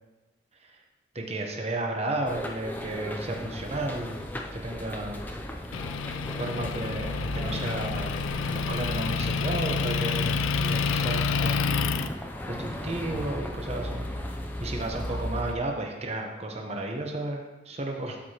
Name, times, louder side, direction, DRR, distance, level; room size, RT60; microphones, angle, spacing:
voice 1, 1.1-4.2 4.5-5.2 6.4-8.1 8.5-11.9 12.5-18.2, right 2 dB, 30° right, 2 dB, 0.9 m, -33 dB
sound 1, 2.3-15.5, equal, 10° left, 0.4 m, -35 dB
Motor vehicle (road) / Engine, 5.7-12.1, left 5 dB, 80° left, 0.3 m, -29 dB
12.5 x 4.7 x 2.9 m, 1.1 s
head